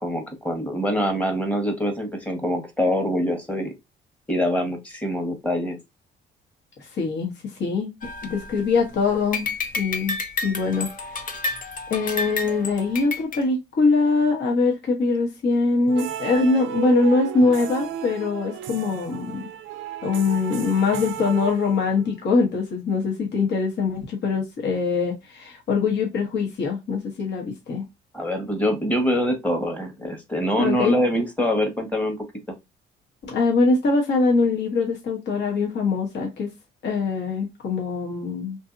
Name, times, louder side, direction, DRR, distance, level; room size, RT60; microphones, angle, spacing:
voice 1, 0.0-3.7 4.3-5.8 28.1-32.2, equal, 5° left, 1.0 m, -24 dB
voice 2, 6.9-7.3 7.6-7.9 8.2-10.2 10.4-10.9 11.9-19.5 20.0-27.9 30.6-30.9 33.2-36.5 36.8-38.6, left 4 dB, 60° left, 1.1 m, -23 dB
sound 1, 8.0-8.9 9.3-13.4, left 3 dB, 45° left, 0.6 m, -30 dB
sound 2, 15.9-22.1, right 11 dB, 85° right, 0.5 m, -33 dB
2.7 x 2.6 x 2.5 m
cardioid pair, 90°, 20 cm